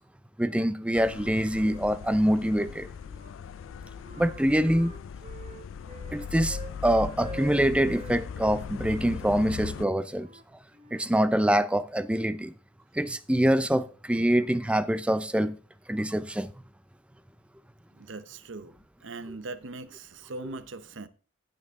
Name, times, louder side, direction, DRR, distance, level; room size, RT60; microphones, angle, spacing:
voice 1, 0.4-2.9 4.2-4.9 6.1-6.6 6.8-10.3 10.9-12.5 12.9-15.5 15.9-16.5, right 1 dB, 5° right, 0.4 m, -25 dB
sound 1, 0.9-9.9, left 7 dB, 80° left, 0.3 m, -39 dB
Wind instrument woodwind instrument, 2.5-3.4 3.7-6.8 7.1-8.6 9.2-11.7, right 4 dB, 35° right, 1.0 m, -46 dB
voice 2, 17.9-18.8 19.0-21.1, right 3 dB, 65° right, 0.7 m, -40 dB
15.5 x 5.3 x 3.6 m
head